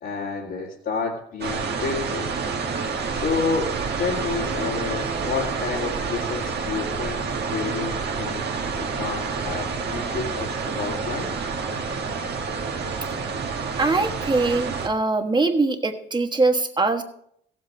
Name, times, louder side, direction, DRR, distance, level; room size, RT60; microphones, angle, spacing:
voice 1, 0.0-2.3 3.1-11.4, left 5 dB, 65° left, -7 dB, 2.3 m, -30 dB
sound 1, 1.4-14.9, right 5 dB, 55° right, 1.6 m, -28 dB
voice 2, 13.8-17.0, right 3 dB, 20° right, 6 dB, 1.3 m, -22 dB
15.5 x 7.6 x 4.3 m, 0.69 s
cardioid pair, 90°, 20 cm